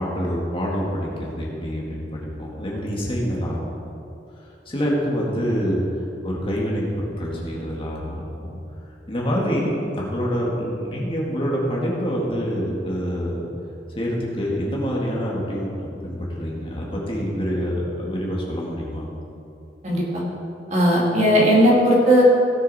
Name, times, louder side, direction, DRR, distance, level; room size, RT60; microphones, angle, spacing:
voice 1, 0.0-3.7 4.4-5.8 6.2-8.6 9.1-13.5 13.9-19.1, equal, 30° left, -3 dB, 1.9 m, -26 dB
voice 2, 19.8-20.2 20.7-22.2, equal, 40° right, -4 dB, 2.2 m, -17 dB
17.0 x 6.7 x 4.2 m, 2.7 s
head